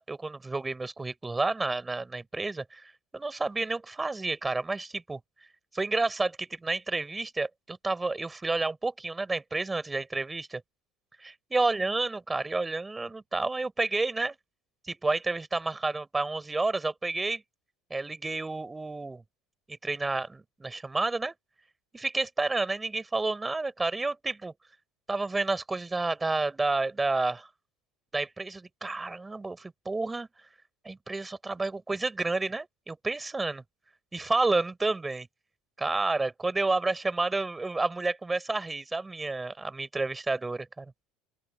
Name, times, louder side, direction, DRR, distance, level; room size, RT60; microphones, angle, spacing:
voice 1, 0.0-2.8 3.1-5.2 5.7-10.6 11.2-14.4 14.9-17.4 17.9-19.2 19.7-21.3 21.9-24.5 25.1-27.5 28.1-30.3 30.8-33.6 34.1-35.3 35.8-40.9, right 3 dB, 15° right, 4.1 m, -30 dB
open air
supercardioid pair, 95°, 0 cm